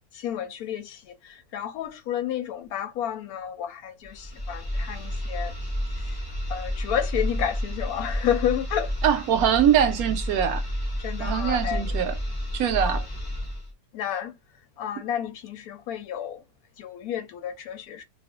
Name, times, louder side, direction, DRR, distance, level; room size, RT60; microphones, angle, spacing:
voice 1, 0.1-6.2 6.5-8.9 11.0-12.0 12.8-13.0 13.9-14.4 14.8-16.4 16.8-18.0, left 10 dB, 75° left, 1.0 m, -31 dB
sound 1, 4.0-13.7, equal, 25° left, 0.5 m, -30 dB
voice 2, 9.0-10.7 11.2-12.1 12.5-13.0, right 9 dB, 70° right, 1.0 m, -23 dB
2.5 x 2.4 x 3.6 m
omnidirectional pair, 1.7 m